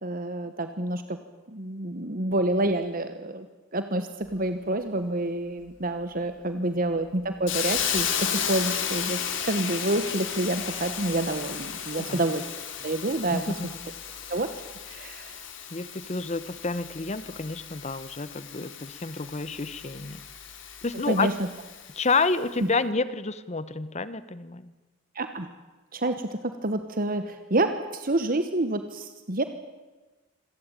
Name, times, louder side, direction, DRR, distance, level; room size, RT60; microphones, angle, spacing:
voice 1, 0.0-1.2 1.5-3.5 3.7-12.5 12.8-13.7 14.3-14.5 14.9-15.4 21.1-21.5 25.1-25.5 25.9-29.4, right 2 dB, 45° right, 9 dB, 1.3 m, -28 dB
Hiss, 7.5-22.2, left 8 dB, 65° left, 2.9 m, -34 dB
voice 2, 15.7-20.2 20.8-21.3 22.0-24.7, left 3 dB, 35° left, 15 dB, 1.0 m, -29 dB
26.5 x 17.5 x 8.9 m, 1.2 s
head